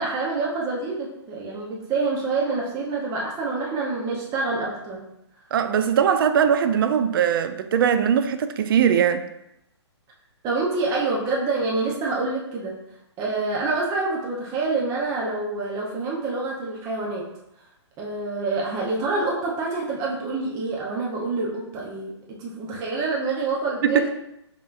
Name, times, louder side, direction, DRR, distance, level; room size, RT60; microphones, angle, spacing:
voice 1, 0.0-5.0 10.4-12.8 13.2-17.2 18.0-24.1, right 3 dB, 20° right, 0.7 m, -27 dB
voice 2, 5.5-9.3 23.8-24.1, right 8 dB, 50° right, 0.4 m, -20 dB
5.3 x 3.0 x 2.5 m
hypercardioid pair, 145°, 15 cm